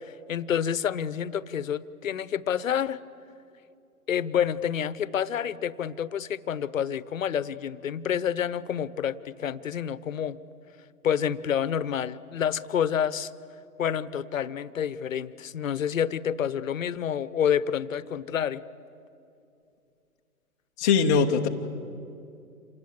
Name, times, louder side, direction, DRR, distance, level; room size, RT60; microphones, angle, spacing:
voice 1, 0.3-3.0 4.1-10.4 11.0-13.3 13.8-18.6, left 8 dB, 60° left, 17 dB, 0.9 m, -28 dB
voice 2, 20.8-21.5, left 6 dB, 15° left, -1 dB, 0.5 m, -21 dB
27.0 x 19.5 x 8.0 m, 2.5 s
hypercardioid pair, 135°, 44 cm